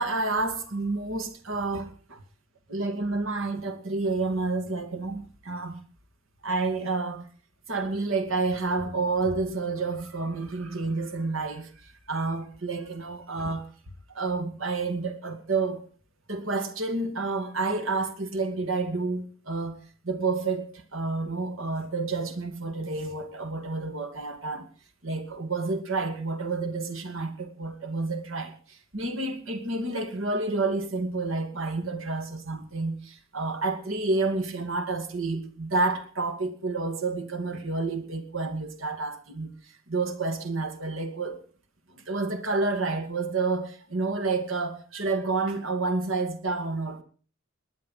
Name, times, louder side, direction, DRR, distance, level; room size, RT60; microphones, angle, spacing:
voice 1, 0.0-2.2 2.7-5.8 6.4-7.3 7.7-13.7 14.1-15.9 16.3-19.8 20.0-24.7 25.0-41.4 41.9-47.0, right 3 dB, 70° right, 2.3 m, -29 dB
20.0 x 10.5 x 5.5 m
head